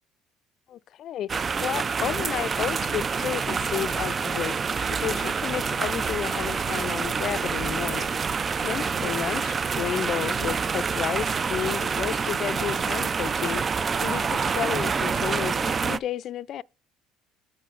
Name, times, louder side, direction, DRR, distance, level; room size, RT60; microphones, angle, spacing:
voice 1, 0.7-8.1 8.6-16.6, left 11 dB, 55° left, 0.3 m, -32 dB
sound 1, 1.3-16.0, right 5 dB, 30° right, 0.3 m, -27 dB
14.0 x 4.9 x 2.4 m
supercardioid pair, 95°, 0 cm